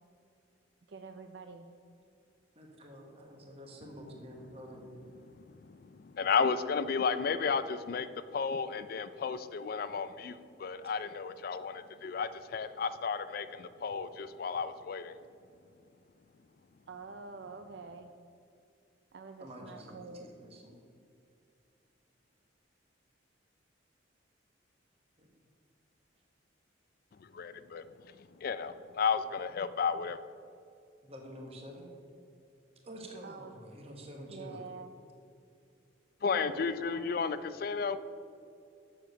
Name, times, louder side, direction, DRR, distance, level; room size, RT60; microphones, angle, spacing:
voice 1, 0.9-1.7 16.9-18.1 19.1-20.3 33.2-33.5 34.3-35.0 36.3-37.2, right 4 dB, 60° right, 6 dB, 0.4 m, -46 dB
voice 2, 2.6-4.8 13.9-14.0 19.4-20.8 25.2-25.3 31.0-31.9 32.8-34.6, equal, 30° right, 1 dB, 1.2 m, -48 dB
voice 3, 5.5-15.2 27.2-30.2 36.2-38.0, left 5 dB, 50° left, 13 dB, 0.3 m, -33 dB
7.5 x 6.7 x 6.3 m, 2.5 s
head